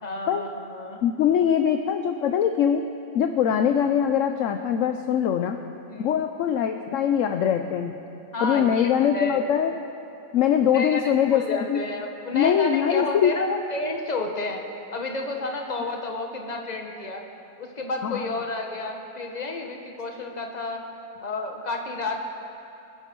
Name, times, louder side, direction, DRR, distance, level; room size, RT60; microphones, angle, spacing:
voice 1, 0.0-1.0 5.9-6.3 8.3-9.4 10.7-11.0 11.3-14.6 14.9-17.2 17.6-20.8 21.2-22.2, left 2 dB, 25° left, 2 dB, 1.4 m, -31 dB
voice 2, 1.0-2.8 3.1-5.6 6.0-7.9 8.4-9.7 10.3-11.8 12.3-13.4 18.0-18.3, left 9 dB, 65° left, 7 dB, 0.8 m, -22 dB
25.0 x 11.0 x 4.6 m, 2.7 s
omnidirectional pair, 1.8 m